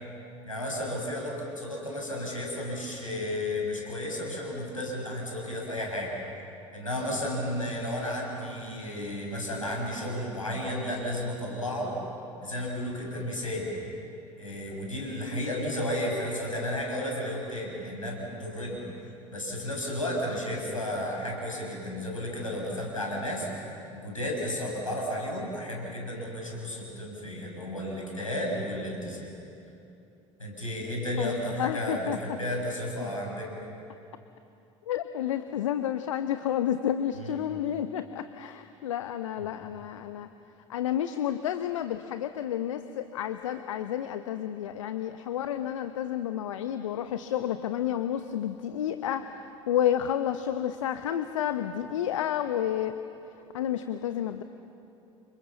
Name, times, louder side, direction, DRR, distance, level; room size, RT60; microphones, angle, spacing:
voice 1, 0.5-6.1 6.7-11.9 12.4-13.7 14.4-18.8 19.3-23.5 23.9-29.3 30.4-33.5 37.2-37.4 39.4-39.5, left 1 dB, 90° left, -1 dB, 6.2 m, -33 dB
voice 2, 31.2-32.2 34.9-40.3 40.7-49.3 49.7-53.0 53.5-54.4, left 10 dB, 75° left, 9 dB, 1.0 m, -30 dB
29.5 x 26.5 x 7.2 m, 2.7 s
figure-of-eight pair, 65°, 17 cm